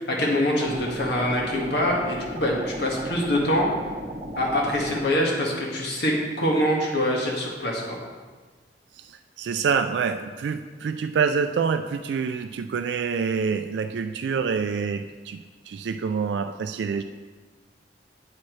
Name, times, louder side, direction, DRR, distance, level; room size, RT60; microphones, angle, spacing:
voice 1, 0.0-3.7 4.4-8.0, left 1 dB, 65° left, -2 dB, 1.8 m, -24 dB
sound 1, 0.6-5.1, equal, 30° right, 0.9 m, -36 dB
voice 2, 8.9-17.0, right 6 dB, 70° right, 8 dB, 0.3 m, -27 dB
8.6 x 8.4 x 3.2 m, 1.4 s
head